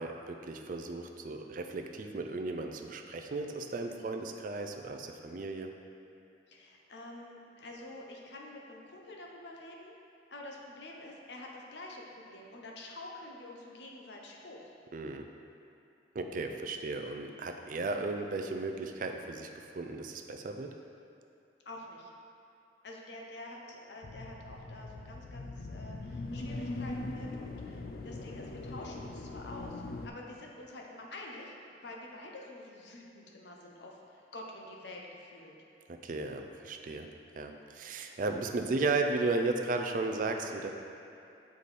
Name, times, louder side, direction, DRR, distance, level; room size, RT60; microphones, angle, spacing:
voice 1, 0.0-5.7 14.9-15.3 16.1-19.5 19.7-20.8 35.9-37.1 37.3-40.7, right 3 dB, 50° right, 4 dB, 0.4 m, -35 dB
voice 2, 6.5-9.9 10.3-14.7 21.6-22.1 22.8-35.6, left 1 dB, 75° left, -1 dB, 0.8 m, -47 dB
sound 1, 24.0-30.1, left 2 dB, 55° left, 0.4 m, -41 dB
6.9 x 4.8 x 4.2 m, 2.7 s
head